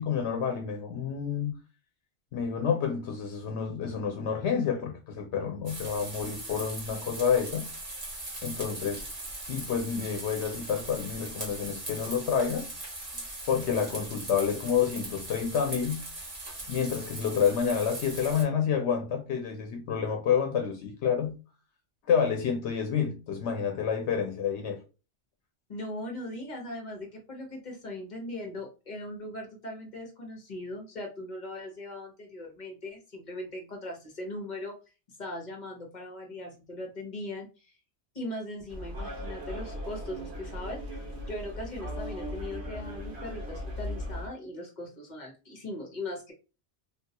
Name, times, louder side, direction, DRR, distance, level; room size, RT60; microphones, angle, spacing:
voice 1, 0.0-1.6 2.3-7.7 8.4-9.1 9.5-12.7 13.5-16.1 16.7-21.3 22.1-24.8, left 7 dB, 90° left, 0.9 m, -29 dB
sound 1, 5.6-18.4, right 2 dB, 35° right, 1.2 m, -40 dB
voice 2, 25.7-34.7 35.2-37.7 38.1-41.0 41.3-46.3, left 1 dB, 45° left, 1.0 m, -39 dB
sound 2, 38.7-44.3, equal, 80° right, 1.2 m, -38 dB
3.4 x 2.2 x 2.8 m
omnidirectional pair, 1.1 m